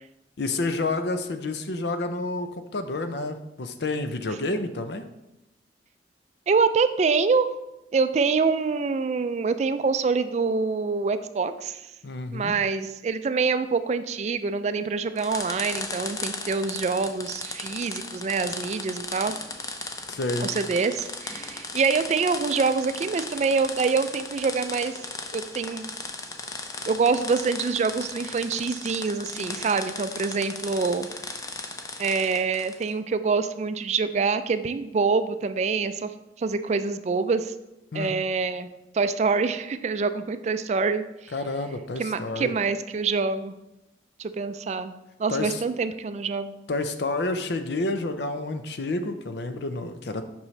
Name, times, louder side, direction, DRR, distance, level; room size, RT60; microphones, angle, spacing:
voice 1, 0.4-5.1 12.0-12.5 20.1-20.5 37.9-38.1 41.3-42.5 45.3-45.6 46.7-50.3, left 2 dB, 70° left, 9 dB, 0.6 m, -29 dB
voice 2, 6.5-7.5 7.9-11.8 12.3-19.4 20.4-25.0 25.3-25.9 26.8-31.1 32.0-36.1 36.4-37.5 37.9-38.7 38.9-41.3 42.0-43.6 44.2-44.9 45.2-46.5, right 4 dB, 40° right, 11 dB, 0.3 m, -25 dB
sound 1, 15.2-32.9, left 3 dB, 20° left, 0.5 m, -36 dB
7.3 x 5.5 x 3.2 m, 0.92 s
head